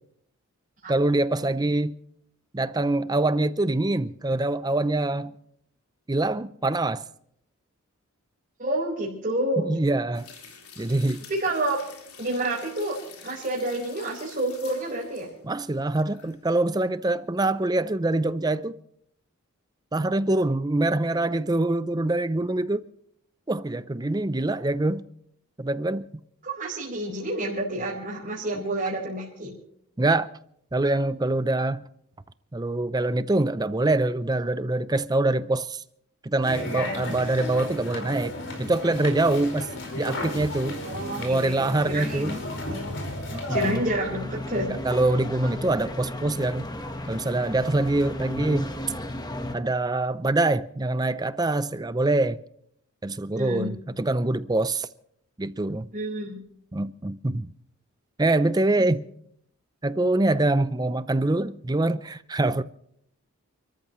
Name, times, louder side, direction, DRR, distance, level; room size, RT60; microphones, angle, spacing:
voice 1, 0.9-2.0 2.5-5.3 6.1-7.0 9.7-10.3 10.8-11.2 15.4-18.8 19.9-22.9 23.5-25.0 25.6-26.1 30.0-30.3 30.7-31.8 32.5-35.8 36.2-39.7 40.0-40.8 41.2-42.4 43.3-43.8 44.7-46.7 47.1-48.7 49.5-52.4 53.0-54.9 55.4-55.9 56.7-57.5 58.2-59.0 59.8-62.6, right 2 dB, 15° right, 0.5 m, -24 dB
voice 2, 8.6-9.7 11.3-11.8 12.2-12.9 13.2-15.3 26.4-29.5 40.8-42.4 43.5-44.8 53.3-53.7 55.9-56.4 58.8-58.9, right 1 dB, 40° right, 4.6 m, -29 dB
sound 1, 10.1-16.4 16.7-16.8, left 6 dB, 80° left, 3.7 m, -48 dB
sound 2, 36.4-43.7, left 2 dB, 55° left, 4.8 m, -33 dB
sound 3, 43.5-49.6, left 1 dB, 20° left, 1.2 m, -34 dB
29.5 x 14.0 x 3.1 m
head